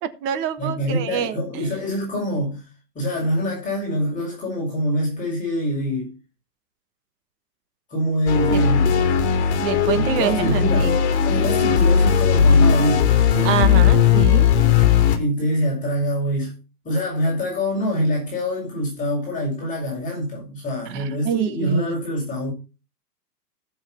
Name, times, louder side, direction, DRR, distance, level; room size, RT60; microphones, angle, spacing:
voice 1, 0.0-1.7 8.5-8.6 9.6-10.9 13.4-14.5 20.9-21.9, right 9 dB, 25° right, 1.4 m, -26 dB
voice 2, 0.6-2.7 3.0-6.1 7.9-9.1 9.9-11.0 11.2-13.6 15.2-16.5 16.8-22.5, equal, 15° left, 7.0 m, -25 dB
sound 1, 8.3-15.2, left 7 dB, 40° left, 3.1 m, -17 dB
14.0 x 7.6 x 4.5 m
hypercardioid pair, 140°, 49 cm